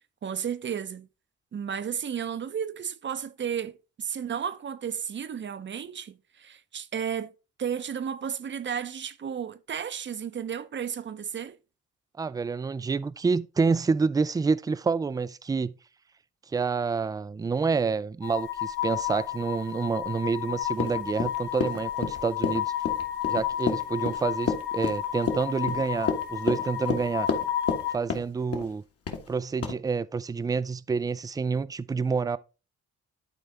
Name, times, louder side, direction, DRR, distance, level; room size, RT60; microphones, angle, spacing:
voice 1, 0.2-1.1 1.5-7.3 7.6-11.6, right 8 dB, 40° right, 0.7 m, -33 dB
voice 2, 12.2-15.7 16.5-22.7 23.3-27.3 27.9-28.8 29.3-32.4, right 5 dB, 15° right, 0.3 m, -28 dB
sound 1, 18.2-28.0, left 12 dB, 90° left, 2.5 m, -32 dB
Run, 20.7-27.8 28.1-28.7 29.1-29.3 29.6-29.8, left 6 dB, 50° left, 1.6 m, -30 dB
12.0 x 4.1 x 3.4 m
cardioid pair, 90°, 30 cm